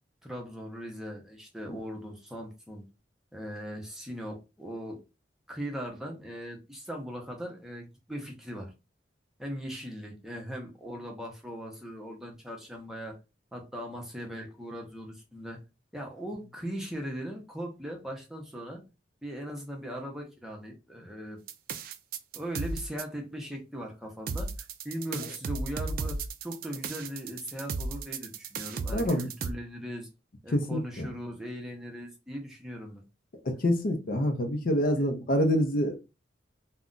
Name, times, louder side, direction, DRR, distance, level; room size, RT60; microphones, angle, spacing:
voice 1, 0.2-2.8 3.3-5.0 5.5-8.7 9.4-13.2 13.5-15.6 15.9-18.8 19.2-21.4 22.3-30.1 30.4-33.0, equal, 5° right, 0.6 m, -39 dB
sound 1, 21.5-23.0 24.3-29.5, right 4 dB, 50° right, 0.3 m, -34 dB
voice 2, 28.9-29.3 30.5-31.1 33.4-36.0, equal, 50° left, 0.5 m, -26 dB
2.4 x 2.1 x 3.7 m
head